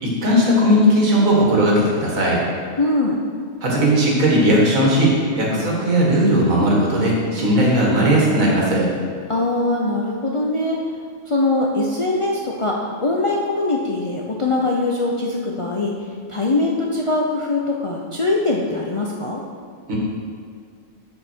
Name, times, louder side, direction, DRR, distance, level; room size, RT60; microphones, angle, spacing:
voice 1, 0.0-2.4 3.6-8.9 19.9-20.0, equal, 80° right, -3 dB, 2.1 m, -17 dB
voice 2, 2.8-3.2 5.5-5.7 9.3-10.8 11.3-16.0 16.3-19.4, left 2 dB, 40° left, -2 dB, 0.5 m, -22 dB
7.6 x 6.6 x 4.4 m, 2.1 s
omnidirectional pair, 1.4 m